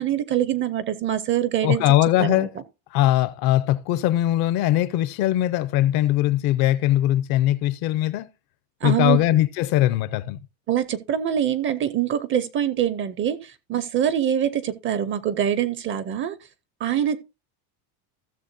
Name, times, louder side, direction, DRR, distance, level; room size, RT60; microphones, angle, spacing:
voice 1, 0.0-1.8 2.2-2.5 8.8-9.2 10.7-16.4 16.8-17.2, right 10 dB, 25° right, 0.5 m, -24 dB
voice 2, 1.6-2.5 2.9-8.3 8.8-10.4, left 14 dB, 50° left, 0.6 m, -21 dB
15.5 x 6.9 x 2.6 m
cardioid pair, 170°, 47 cm